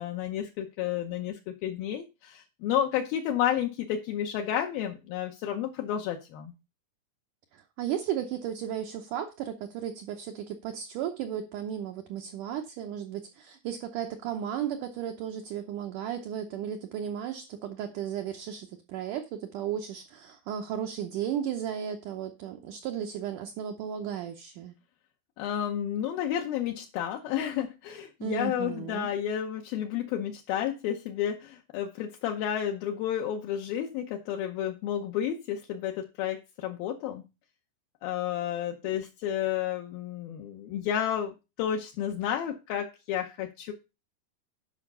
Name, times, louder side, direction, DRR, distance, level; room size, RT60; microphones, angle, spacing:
voice 1, 0.0-6.5 25.4-37.2 38.0-41.3 41.6-43.7, left 10 dB, 75° left, 2.5 m, -31 dB
voice 2, 7.5-24.7 28.2-29.1, right 9 dB, 75° right, 2.0 m, -34 dB
11.0 x 5.7 x 5.4 m
omnidirectional pair, 4.7 m